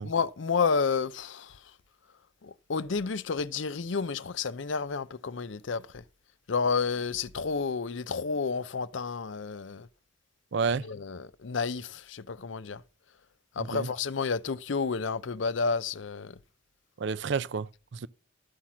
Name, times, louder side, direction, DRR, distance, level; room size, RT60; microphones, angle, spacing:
voice 1, 0.0-1.6 2.4-6.0 6.5-9.9 10.8-12.8 13.6-16.4, left 5 dB, 70° left, 0.6 m, -30 dB
voice 2, 10.5-10.8 13.6-13.9 17.0-18.1, right 5 dB, 65° right, 0.5 m, -30 dB
13.0 x 5.8 x 6.2 m
head